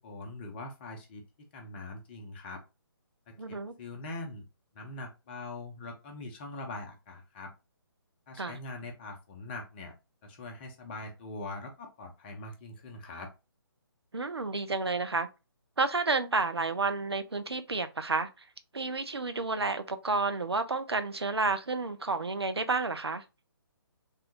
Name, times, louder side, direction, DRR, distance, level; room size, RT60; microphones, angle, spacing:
voice 1, 0.0-2.6 3.3-4.5 4.7-7.5 8.3-9.9 10.2-13.3, left 2 dB, 25° left, 0.6 m, -42 dB
voice 2, 3.4-3.7 8.4-8.6 14.1-15.3 15.8-18.3 18.7-23.2, right 3 dB, 85° right, 0.5 m, -30 dB
3.5 x 2.2 x 2.7 m
figure-of-eight pair, 140°, 13 cm